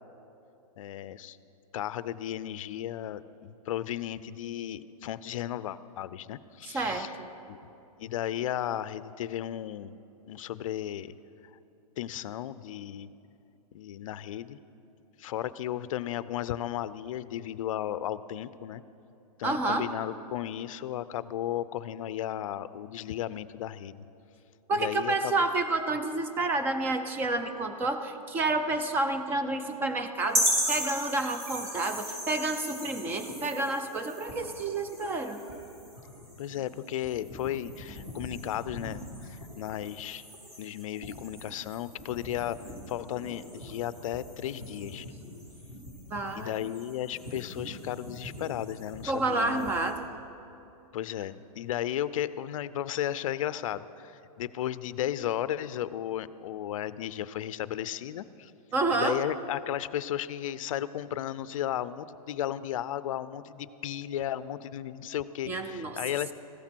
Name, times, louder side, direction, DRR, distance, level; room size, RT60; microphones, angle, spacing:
voice 1, 0.8-1.4 1.7-7.1 7.5-7.6 8.0-9.9 10.3-11.1 12.0-13.1 13.7-14.6 15.2-18.8 19.4-24.0 24.7-25.4 36.4-40.2 40.6-42.6 42.9-45.1 46.4-49.7 50.9-58.5 58.9-66.3, left 11 dB, 60° left, 16 dB, 0.5 m, -34 dB
voice 2, 6.6-7.3 19.4-19.9 24.7-35.4 46.1-46.5 49.1-50.0 58.7-59.2 65.5-66.0, right 2 dB, 10° right, 8 dB, 0.4 m, -29 dB
sound 1, 30.3-49.9, equal, 35° right, 3.9 m, -38 dB
15.0 x 13.5 x 4.5 m, 2.9 s
hypercardioid pair, 160°, 20 cm